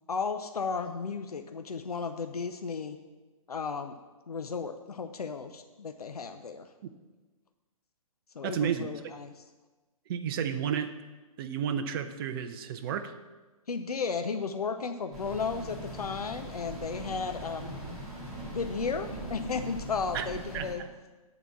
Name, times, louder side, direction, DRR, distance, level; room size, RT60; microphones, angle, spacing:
voice 1, 0.1-3.0 3.5-3.9 4.3-6.7 8.3-9.3 13.7-17.7 18.4-20.8, left 5 dB, 85° left, 7 dB, 0.7 m, -34 dB
voice 2, 8.4-8.9 10.1-10.9 11.4-13.1 20.1-20.2 20.5-20.9, right 8 dB, 40° right, 8 dB, 0.6 m, -32 dB
sound 1, 15.1-20.7, right 1 dB, ahead, 2.4 m, -41 dB
10.0 x 4.1 x 7.3 m, 1.2 s
hypercardioid pair, 135°, 19 cm